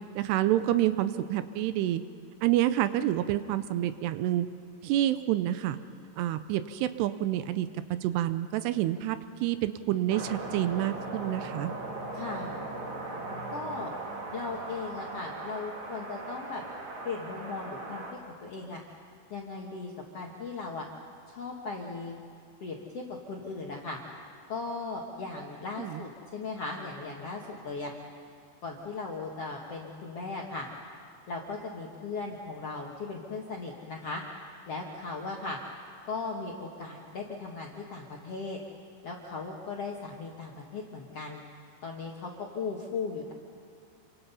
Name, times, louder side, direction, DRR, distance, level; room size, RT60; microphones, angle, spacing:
voice 1, 0.2-2.0 2.4-4.5 4.8-5.8 6.2-7.7 8.0-11.7 25.8-26.0, right 13 dB, 80° right, 12 dB, 2.7 m, -28 dB
sound 1, 10.1-18.1, right 2 dB, 35° right, 2.5 m, -39 dB
voice 2, 12.1-12.6 13.5-13.9 14.3-16.6 17.0-18.0 18.4-18.8 19.3-20.9 21.3-22.1 22.6-24.0 24.5-27.9 28.6-30.7 31.3-34.2 34.7-35.6 36.0-38.6 39.0-41.4 41.8-43.3, left 4 dB, 65° left, -1 dB, 1.5 m, -37 dB
28.0 x 25.0 x 5.6 m, 2.4 s
omnidirectional pair, 5.0 m